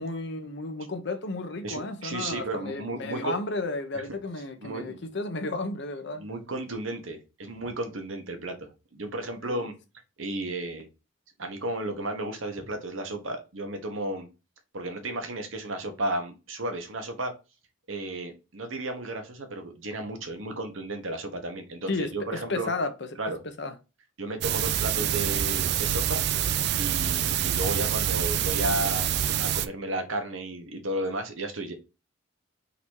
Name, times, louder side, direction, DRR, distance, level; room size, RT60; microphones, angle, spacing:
voice 1, 0.0-6.2 9.4-9.7 21.9-22.1 22.5-22.9 23.6-23.7, left 2 dB, 55° left, 0.8 m, -33 dB
voice 2, 1.6-3.3 3.9-4.0 4.6-5.0 6.2-9.7 10.2-10.9 11.4-14.3 14.7-17.3 17.9-22.7 23.2-23.4 24.2-26.2 26.8-29.1 29.4-31.7, right 1 dB, 75° right, 1.2 m, -33 dB
sound 1, 24.4-29.7, right 10 dB, 55° right, 0.3 m, -26 dB
4.0 x 2.8 x 4.6 m
head